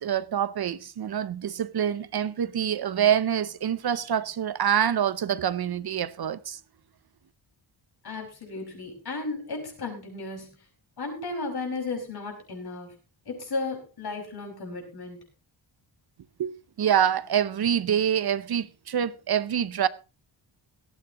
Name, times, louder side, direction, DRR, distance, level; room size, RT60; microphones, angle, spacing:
voice 1, 0.0-6.6 16.4-19.9, right 9 dB, 55° right, 0.6 m, -26 dB
voice 2, 8.0-10.5 11.0-12.9 13.3-15.2, left 3 dB, 55° left, 5.3 m, -34 dB
18.0 x 14.0 x 2.9 m
wide cardioid pair, 175°, 46 cm